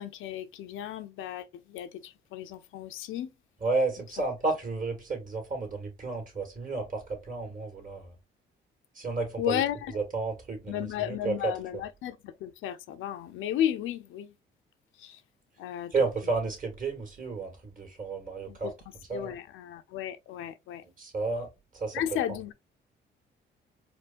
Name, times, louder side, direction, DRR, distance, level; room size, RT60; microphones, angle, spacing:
voice 1, 0.0-3.3 9.4-10.0 10.7-14.3 15.0-15.2 15.6-15.9 18.5-18.7 19.1-20.8 21.9-22.5, left 11 dB, 85° left, 0.5 m, -34 dB
voice 2, 3.6-8.1 9.0-9.6 9.9-11.5 15.9-18.7 19.1-19.4 20.8-21.5 21.7-22.0, right 3 dB, 45° right, 1.8 m, -32 dB
4.4 x 2.2 x 2.5 m
cardioid pair, 90°, 20 cm